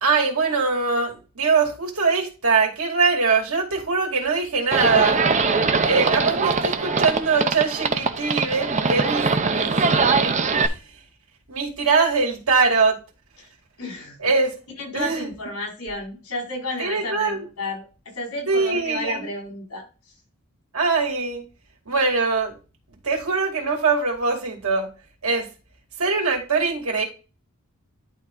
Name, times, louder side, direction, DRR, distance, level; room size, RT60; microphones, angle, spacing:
voice 1, 0.0-5.2 5.8-10.3 10.6-10.8 11.5-13.0 14.2-14.6 14.9-15.3 16.8-17.4 18.5-19.3 20.7-21.4 21.9-22.6 23.0-24.9 25.2-25.5 26.0-27.1, right 4 dB, 75° right, 0 dB, 2.7 m, -22 dB
Livestock farm animals working animals, 4.7-10.7, right 4 dB, 35° right, 0.8 m, -22 dB
voice 2, 13.8-14.2 14.8-19.9, left 1 dB, 75° left, 0 dB, 4.7 m, -32 dB
11.5 x 3.9 x 3.8 m, 0.31 s
head